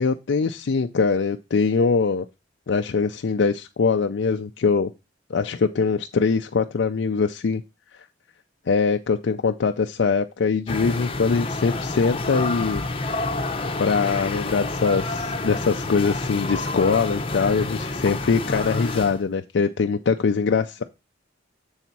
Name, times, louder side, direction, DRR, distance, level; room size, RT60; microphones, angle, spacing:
voice 1, 0.0-2.3 2.7-4.9 5.3-7.6 8.7-12.8 13.8-20.8, left 5 dB, 75° left, 6 dB, 0.4 m, -22 dB
sound 1, 10.7-19.2, left 2 dB, 30° left, 0.8 m, -28 dB
7.2 x 4.0 x 5.9 m, 0.25 s
head